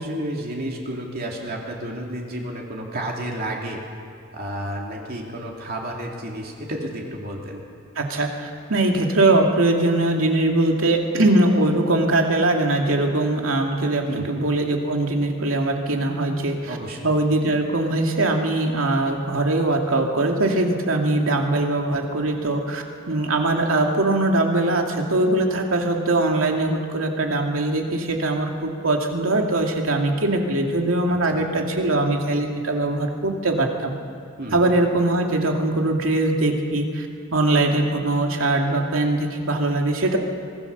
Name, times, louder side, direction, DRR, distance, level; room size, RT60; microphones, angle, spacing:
voice 1, 0.0-3.8 4.3-7.7 14.1-14.3 16.7-17.1 31.1-31.4 34.4-34.6, right 1 dB, 50° right, -1 dB, 2.8 m, -31 dB
voice 2, 8.0-16.8 17.0-34.0 34.5-37.1 37.3-40.2, right 2 dB, 80° right, 2 dB, 2.6 m, -21 dB
24.5 x 18.5 x 6.9 m, 2.3 s
head